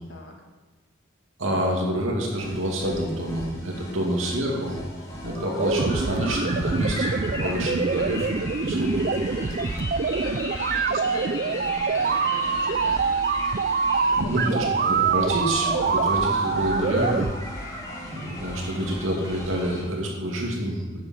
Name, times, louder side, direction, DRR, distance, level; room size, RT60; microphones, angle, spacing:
voice 1, 1.4-4.8 5.2-9.6 13.9-14.6 15.1-17.3 17.7-21.0, equal, 85° right, -1 dB, 2.6 m, -28 dB
sound 1, 2.4-19.8, left 1 dB, 15° left, 2.0 m, -36 dB
sound 2, 5.6-17.3, right 5 dB, 45° right, 0.4 m, -25 dB
voice 2, 10.2-13.0 14.1-14.8 17.6-17.9, left 2 dB, 70° left, 1 dB, 1.9 m, -40 dB
11.0 x 9.0 x 4.6 m, 1.3 s
head